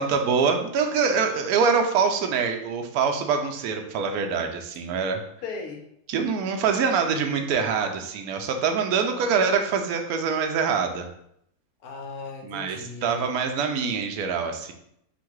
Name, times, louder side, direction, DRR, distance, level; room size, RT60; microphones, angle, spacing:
voice 1, 0.0-5.2 6.1-11.1 12.4-14.7, right 5 dB, 75° right, 4 dB, 1.0 m, -24 dB
voice 2, 5.4-5.8 9.0-9.3 11.8-13.3, left 4 dB, 70° left, 2 dB, 1.2 m, -37 dB
3.7 x 2.3 x 4.4 m, 0.72 s
omnidirectional pair, 1.7 m